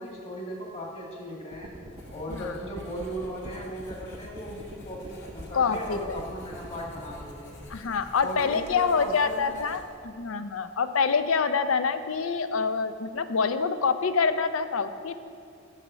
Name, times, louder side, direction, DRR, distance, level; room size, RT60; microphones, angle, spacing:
voice 1, 0.0-1.7 2.1-7.5 8.2-9.6, equal, 35° left, -2 dB, 1.8 m, -37 dB
sound 1, 1.5-7.2, right 1 dB, 25° right, 0.6 m, -44 dB
Writing, 1.9-10.1, left 1 dB, 60° left, 2.4 m, -49 dB
voice 2, 5.5-6.2 7.7-15.1, left 5 dB, 80° left, 10 dB, 0.5 m, -26 dB
7.7 x 6.5 x 6.2 m, 2.5 s
head